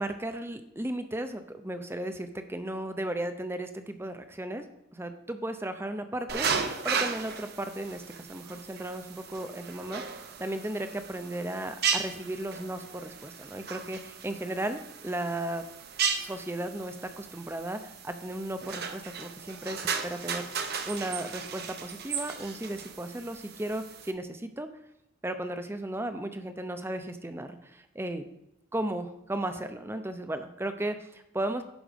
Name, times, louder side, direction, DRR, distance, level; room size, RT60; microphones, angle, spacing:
voice 1, 0.0-4.6 4.9-6.5 6.8-15.6 16.2-24.7 25.2-28.3 28.7-31.6, right 1 dB, 10° right, 8 dB, 0.6 m, -35 dB
sound 1, 6.3-24.1, right 6 dB, 50° right, 0.8 m, -36 dB
11.5 x 5.0 x 5.1 m, 0.87 s
head